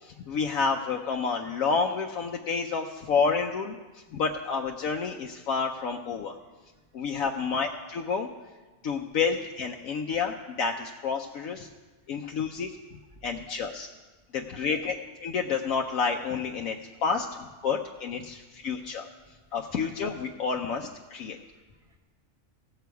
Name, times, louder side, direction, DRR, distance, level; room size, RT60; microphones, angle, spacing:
voice 1, 0.0-3.8 4.1-6.4 6.9-8.3 8.8-11.7 12.1-12.8 13.2-13.9 14.3-15.0 15.2-16.8 17.0-19.1 19.5-21.4, left 5 dB, 80° left, 2 dB, 1.1 m, -29 dB
voice 2, 6.4-6.8 7.3-7.5 13.1-13.2 14.5-14.9 18.6-18.9 21.3-22.0, right 3 dB, 25° right, 3 dB, 1.3 m, -53 dB
17.0 x 6.9 x 4.6 m, 1.2 s
omnidirectional pair, 1.4 m